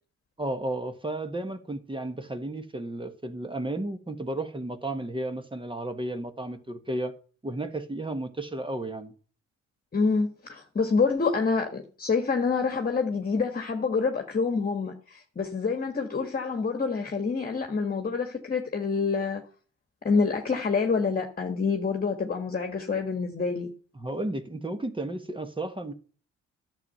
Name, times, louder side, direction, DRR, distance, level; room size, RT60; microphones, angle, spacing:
voice 1, 0.4-7.1 7.4-9.1 23.9-25.9, right 1 dB, 15° right, 1.4 m, -33 dB
voice 2, 9.9-19.4 20.0-23.7, left 4 dB, 30° left, 1.6 m, -27 dB
11.0 x 7.5 x 5.6 m
supercardioid pair, 75°, 31 cm